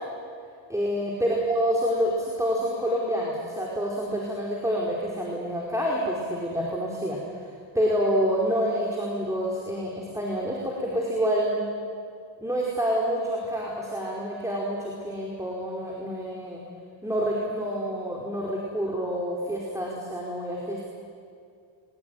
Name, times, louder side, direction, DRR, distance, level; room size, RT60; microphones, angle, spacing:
voice 1, 0.7-7.5 7.7-11.6 12.4-16.6 17.0-20.9, equal, 5° right, -3 dB, 4.7 m, -27 dB
22.5 x 22.0 x 9.4 m, 2.3 s
cardioid pair, 100°, 46 cm